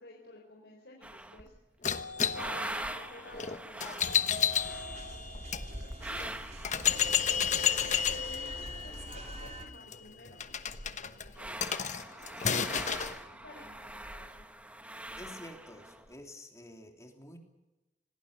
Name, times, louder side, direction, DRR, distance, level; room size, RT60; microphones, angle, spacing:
voice 1, 0.0-1.5 2.2-5.3 5.6-7.8 8.1-10.6 10.8-14.4, left 2 dB, 85° left, -1 dB, 4.1 m, -54 dB
sound 1, 1.0-1.6 2.0-9.8 10.1-10.2 10.4-16.1, right 1 dB, 10° right, 1.2 m, -44 dB
sound 2, 1.8-5.6 6.2-6.3 6.6-13.2, left 8 dB, 45° left, 1.1 m, -32 dB
sound 3, 4.6-9.6, right 1 dB, 40° right, 2.9 m, -44 dB
voice 2, 15.2-17.4, left 1 dB, 20° left, 3 dB, 3.2 m, -49 dB
26.5 x 18.5 x 6.8 m, 1.0 s
head